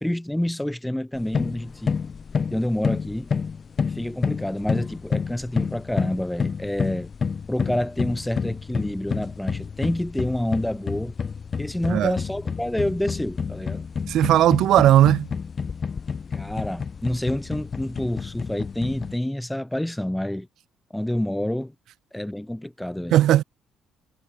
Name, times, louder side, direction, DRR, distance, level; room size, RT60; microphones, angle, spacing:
voice 1, 0.0-2.0 2.5-3.3 3.8-7.1 7.5-11.2 11.6-13.8 16.3-20.5 20.9-21.7 22.1-23.2, left 1 dB, 5° left, 2.3 m, -28 dB
sound 1, 1.1-19.2, left 6 dB, 40° left, 1.6 m, -29 dB
voice 2, 14.1-15.3 23.1-23.4, right 12 dB, 60° right, 1.1 m, -17 dB
figure-of-eight pair, 50°, 0 cm